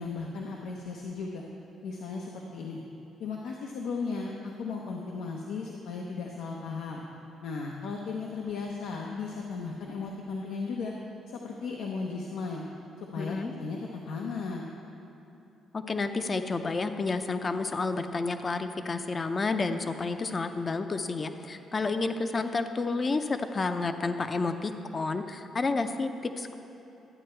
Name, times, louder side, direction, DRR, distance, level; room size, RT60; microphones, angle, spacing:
voice 1, 0.0-1.4 1.8-2.8 3.2-7.0 7.4-10.9 11.3-12.6 13.0-14.6, left 4 dB, 85° left, -1 dB, 0.8 m, -36 dB
voice 2, 13.2-13.5 15.7-26.6, left 3 dB, 35° left, 8 dB, 0.6 m, -30 dB
12.0 x 8.5 x 4.4 m, 3.0 s
cardioid pair, 90°, 0 cm